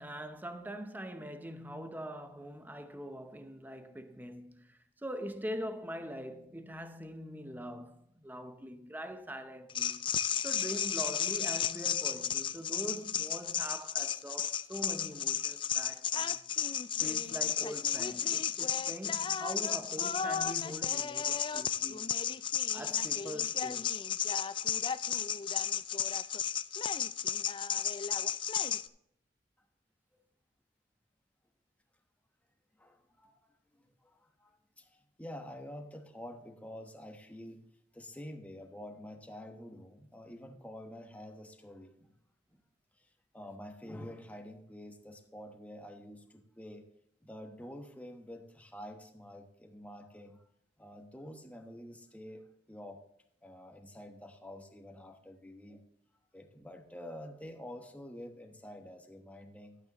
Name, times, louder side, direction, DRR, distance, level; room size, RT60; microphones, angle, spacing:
voice 1, 0.0-10.1 10.4-16.4 17.0-22.0 22.7-23.9, equal, 10° right, 0.7 m, -43 dB
sound 1, 9.7-28.9, left 8 dB, 30° left, 0.3 m, -33 dB
voice 2, 32.8-37.7 37.9-42.1 43.0-46.8 47.2-50.4 50.8-53.0 53.4-55.8 56.3-59.8, left 1 dB, 10° left, 1.1 m, -48 dB
12.0 x 8.7 x 3.0 m
head